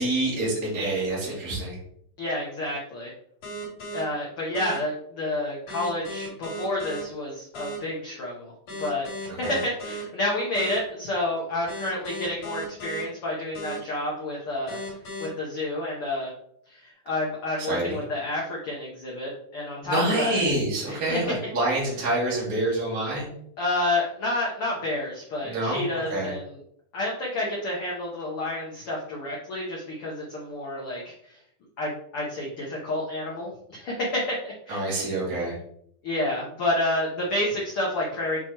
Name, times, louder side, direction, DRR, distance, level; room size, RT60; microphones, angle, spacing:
voice 1, 0.0-1.8 9.4-9.5 17.6-18.0 19.8-23.3 25.4-26.3 34.7-35.6, right 2 dB, 25° right, -7 dB, 2.4 m, -27 dB
voice 2, 2.2-3.1 3.9-8.5 8.8-14.8 15.2-16.3 16.7-20.4 20.9-21.3 23.6-26.6 26.9-31.1 31.8-34.8 36.0-38.4, left 1 dB, 85° left, -3 dB, 1.2 m, -29 dB
sound 1, 3.4-4.0 4.5-4.8 5.7-7.0 7.5-7.8 8.7-10.0 10.5-10.8 11.7-13.0 13.5-13.8 14.7-15.3, right 1 dB, 55° left, 3.4 m, -36 dB
7.0 x 4.6 x 3.0 m, 0.68 s
omnidirectional pair, 4.2 m